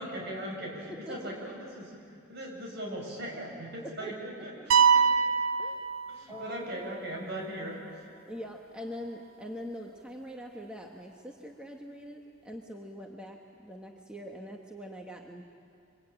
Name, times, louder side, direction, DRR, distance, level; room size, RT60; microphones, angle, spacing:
voice 1, 0.0-5.1 6.1-7.8, right 1 dB, 55° right, -1 dB, 6.9 m, -39 dB
voice 2, 0.9-1.3 3.8-4.1 4.4-4.5 4.8-4.9 5.6-6.0 6.3-6.6 8.3-15.4, equal, 5° right, 0 dB, 1.3 m, -43 dB
sound 1, 4.7-6.6, right 6 dB, 80° right, 0.7 m, -24 dB
27.0 x 25.0 x 9.0 m, 2.4 s
head